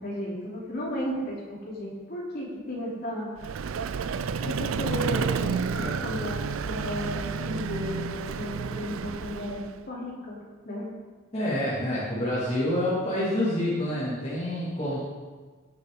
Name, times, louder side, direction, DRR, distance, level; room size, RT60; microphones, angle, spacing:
voice 1, 0.0-3.3 4.4-6.4 6.6-10.4 10.7-10.9, equal, 50° left, -5 dB, 3.4 m, -34 dB
Vehicle, 3.4-9.8, right 5 dB, 80° right, 0.4 m, -31 dB
voice 2, 11.3-15.0, left 1 dB, 30° left, -9 dB, 2.6 m, -27 dB
18.0 x 6.6 x 3.9 m, 1.4 s
head